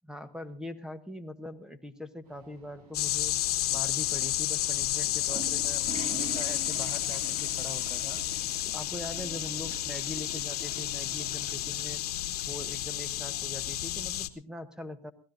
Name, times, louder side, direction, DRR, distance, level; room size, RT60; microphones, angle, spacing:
voice 1, 0.1-3.4 3.7-8.2 8.7-12.0 12.5-15.1, left 1 dB, 5° right, 12 dB, 1.0 m, -42 dB
sound 1, 2.2-9.9, right 3 dB, 85° right, 3.6 m, -54 dB
sound 2, 2.9-14.3, left 14 dB, 75° left, 1.1 m, -31 dB
Water / Toilet flush, 4.9-12.7, right 5 dB, 35° right, 1.9 m, -45 dB
23.0 x 17.0 x 2.6 m, 0.40 s
hypercardioid pair, 100°, 19 cm